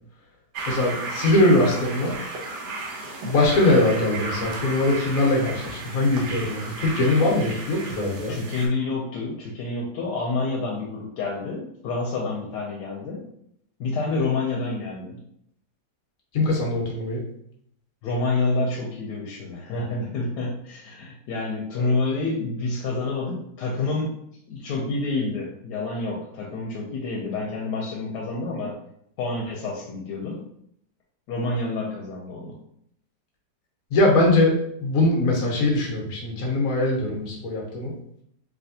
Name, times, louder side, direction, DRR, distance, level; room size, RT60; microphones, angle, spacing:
sound 1, 0.5-8.7, right 2 dB, 80° right, 1.3 m, -34 dB
voice 1, 0.7-2.1 3.2-8.4 16.3-17.2 21.7-21.9 33.9-34.5 34.8-37.9, left 2 dB, 65° left, -2 dB, 1.3 m, -21 dB
voice 2, 8.3-13.2 13.8-15.2 18.0-24.1 24.5-28.7 29.2-30.4 31.3-32.6, left 3 dB, 90° left, -3 dB, 1.2 m, -28 dB
3.2 x 2.8 x 2.7 m, 0.72 s
omnidirectional pair, 1.7 m